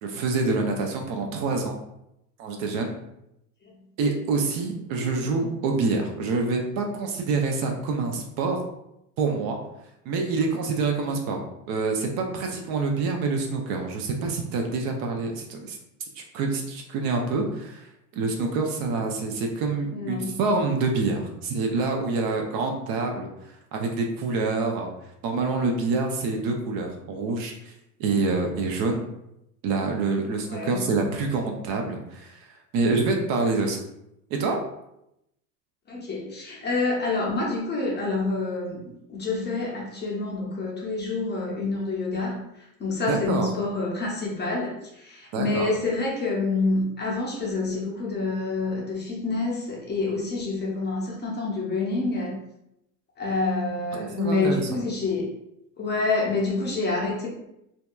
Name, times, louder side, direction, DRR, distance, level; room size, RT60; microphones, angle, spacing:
voice 1, 0.0-1.8 2.4-2.9 4.0-8.6 9.2-9.6 10.1-15.8 16.2-17.9 18.1-23.3 23.7-24.9 25.2-27.7 28.0-29.1 29.6-32.5 32.7-33.8 34.3-34.6 43.1-43.5 45.3-45.7 54.0-54.8, right 3 dB, 50° right, 2 dB, 0.5 m, -26 dB
voice 2, 19.9-20.4 30.5-30.9 35.9-38.8 39.1-52.4 53.2-55.3 55.8-57.3, left 3 dB, 20° left, -3 dB, 0.5 m, -27 dB
2.7 x 2.2 x 2.2 m, 0.82 s
hypercardioid pair, 95°, 48 cm